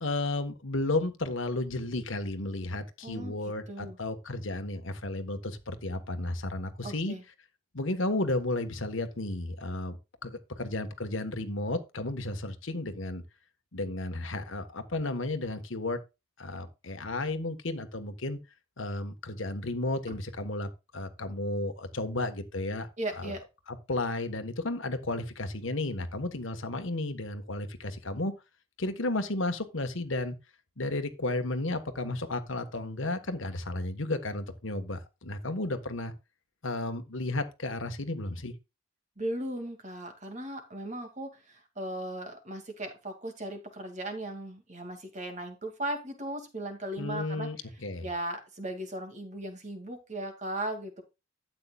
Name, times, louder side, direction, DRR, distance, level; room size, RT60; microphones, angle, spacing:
voice 1, 0.0-7.1 7.7-13.2 13.7-16.0 16.4-18.4 18.8-22.9 23.2-23.3 23.7-28.3 28.8-30.4 30.8-36.1 36.6-38.5 47.0-48.1, left 2 dB, 70° left, 1.4 m, -33 dB
voice 2, 3.0-3.4 3.7-4.0 6.8-7.2 20.1-20.2 23.0-23.4 39.2-47.5 48.0-51.0, right 1 dB, 35° right, 2.3 m, -37 dB
12.5 x 8.6 x 2.4 m
head